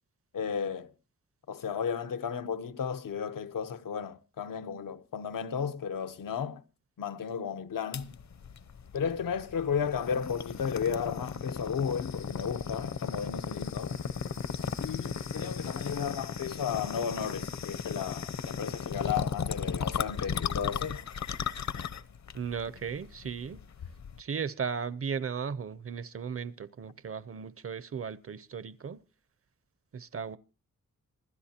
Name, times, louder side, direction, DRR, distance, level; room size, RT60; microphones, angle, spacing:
voice 1, 0.3-0.9 1.5-6.6 7.0-8.2 8.9-14.0 14.8-21.0, left 7 dB, 85° left, 1.0 m, -34 dB
sound 1, 7.9-24.2, left 7 dB, 60° left, 0.8 m, -36 dB
voice 2, 22.3-23.6 24.2-29.0 29.9-30.4, right 6 dB, 45° right, 0.7 m, -36 dB
25.5 x 13.0 x 2.8 m
wide cardioid pair, 125°, 32 cm